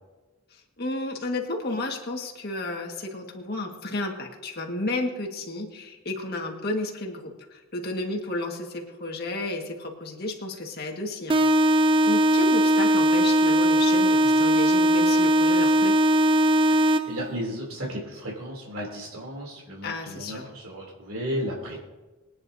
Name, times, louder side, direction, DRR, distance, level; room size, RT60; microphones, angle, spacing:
voice 1, 0.8-11.7 12.0-16.0 19.8-20.5, left 2 dB, 45° left, 1 dB, 1.8 m, -32 dB
sound 1, 11.3-17.3, right 1 dB, 25° right, 0.4 m, -20 dB
voice 2, 16.7-21.8, equal, 85° right, -3 dB, 3.2 m, -34 dB
22.5 x 9.8 x 2.8 m, 1.2 s
head